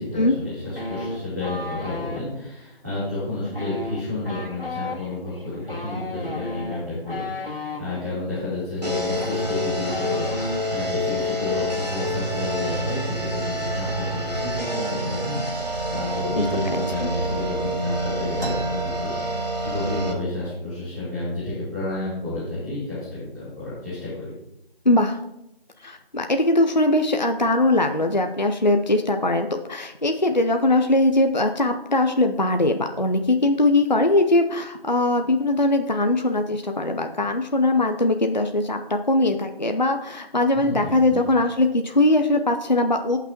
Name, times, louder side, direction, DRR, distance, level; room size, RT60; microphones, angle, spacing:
voice 1, 0.0-24.3 40.5-41.2, left 2 dB, 20° right, -11 dB, 3.2 m, -31 dB
sound 1, 0.8-2.2 3.5-7.8 8.8-8.9 9.1-10.8 11.0-11.3 11.6-12.1, left 2 dB, 65° left, 2.0 m, -34 dB
sound 2, 8.8-20.1, equal, 40° right, 2.0 m, -27 dB
voice 2, 16.7-17.1 24.9-25.2 25.8-43.2, left 2 dB, 50° left, 5 dB, 0.6 m, -21 dB
sound 3, 18.4-20.0 20.3-20.4 20.7-21.3 21.9-22.0 22.8-22.9 23.4-23.9, right 1 dB, 60° right, 2.5 m, -41 dB
17.0 x 6.0 x 2.9 m, 0.88 s
figure-of-eight pair, 175°, 30 cm